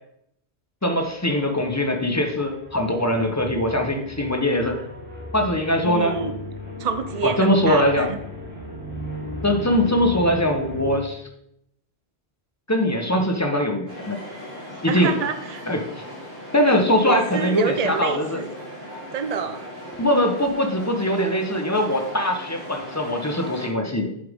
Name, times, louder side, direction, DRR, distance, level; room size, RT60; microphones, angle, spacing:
voice 1, 0.8-4.8 5.3-6.2 7.2-8.1 9.4-11.3 12.7-14.2 14.8-15.1 15.7-15.8 16.5-18.4 20.0-24.1, left 1 dB, 15° left, 4 dB, 1.0 m, -22 dB
sound 1, 0.8-11.0, left 1 dB, 10° right, 2.3 m, -36 dB
voice 2, 5.8-6.3 6.8-8.2 14.9-15.7 17.0-18.5 19.1-19.6, right 6 dB, 40° right, 9 dB, 0.7 m, -27 dB
sound 2, 13.9-23.7, equal, 65° right, 3.4 m, -38 dB
8.4 x 7.8 x 3.6 m, 0.75 s
omnidirectional pair, 1.1 m